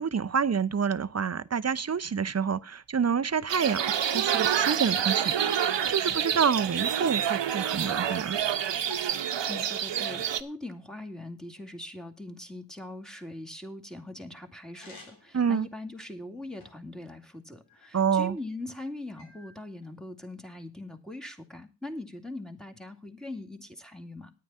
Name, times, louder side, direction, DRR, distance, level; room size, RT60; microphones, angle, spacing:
voice 1, 0.0-8.4 15.3-15.7 17.9-18.4, right 6 dB, 35° right, 0.8 m, -28 dB
sound 1, 3.5-10.4, right 9 dB, 70° right, 1.2 m, -28 dB
sound 2, 5.5-6.3 7.1-8.3 8.6-10.1 14.7-15.4 16.0-17.0 17.7-18.5 19.2-19.9, left 2 dB, 85° left, 3.8 m, -52 dB
voice 2, 9.1-24.3, left 2 dB, ahead, 2.4 m, -41 dB
9.7 x 9.3 x 5.5 m
supercardioid pair, 45°, 45 cm